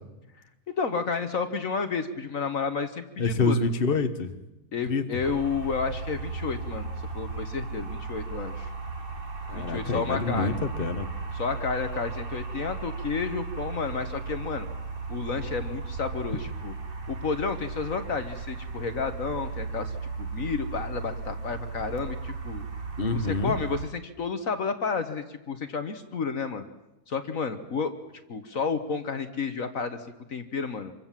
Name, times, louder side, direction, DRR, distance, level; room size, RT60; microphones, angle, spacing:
voice 1, 0.7-3.7 4.7-8.7 9.5-10.6 11.3-14.7 15.1-16.7 17.1-19.9 20.2-22.6 23.1-26.6 27.1-27.9 28.3-30.9, left 5 dB, 55° left, 9 dB, 1.6 m, -31 dB
voice 2, 3.2-4.3 4.9-5.1 9.5-11.1 23.0-23.5, left 3 dB, 35° left, 7 dB, 1.5 m, -27 dB
sound 1, 5.2-23.9, right 4 dB, 35° right, 1.6 m, -36 dB
26.5 x 23.5 x 7.4 m, 0.96 s
omnidirectional pair, 1.8 m